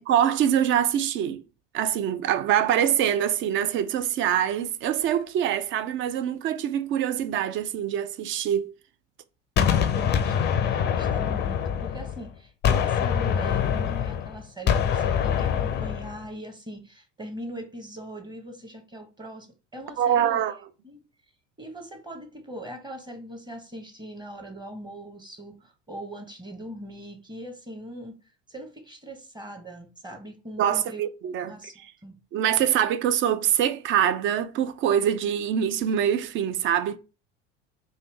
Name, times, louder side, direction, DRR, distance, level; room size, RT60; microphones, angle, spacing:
voice 1, 0.0-1.4 1.7-8.7 20.0-20.6 30.6-31.5 32.3-37.0, right 10 dB, 35° right, 0.4 m, -24 dB
Gunshot gunfire, 9.6-12.3 12.6-16.2, left 8 dB, 30° left, 0.5 m, -24 dB
voice 2, 9.9-19.5 19.7-20.4 20.8-21.0 21.6-28.2 28.5-31.0 31.4-31.7 32.0-32.2, right 1 dB, 10° right, 0.9 m, -41 dB
3.3 x 2.7 x 3.1 m
figure-of-eight pair, 70°, 37 cm